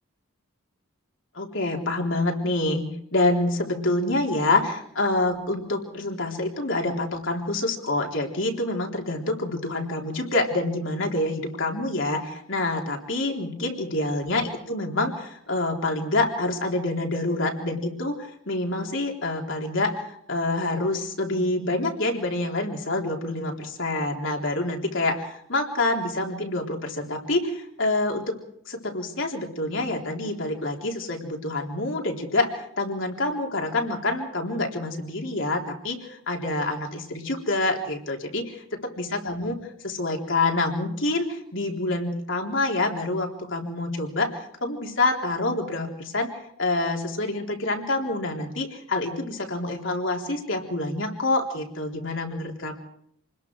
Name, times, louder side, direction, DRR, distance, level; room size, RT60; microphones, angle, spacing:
voice 1, 1.3-2.8 3.1-28.4 28.7-38.6 39.0-39.6 39.8-46.3 46.6-52.7, left 2 dB, 60° left, 1 dB, 3.8 m, -27 dB
28.5 x 21.0 x 4.8 m, 0.69 s
head